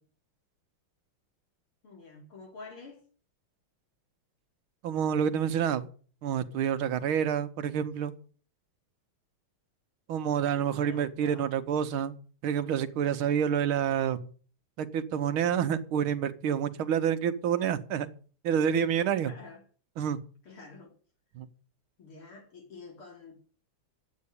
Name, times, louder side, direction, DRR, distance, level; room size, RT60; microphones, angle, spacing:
voice 1, 1.8-3.0 10.4-11.5 19.2-19.6 20.4-20.9 22.0-23.5, left 3 dB, 85° left, 4.7 m, -48 dB
voice 2, 4.8-5.9 6.2-8.1 10.1-12.2 12.4-14.3 14.8-18.1 18.4-19.3 20.0-20.2 21.4-21.5, right 8 dB, 80° right, 1.8 m, -28 dB
11.0 x 8.5 x 8.4 m
omnidirectional pair, 2.3 m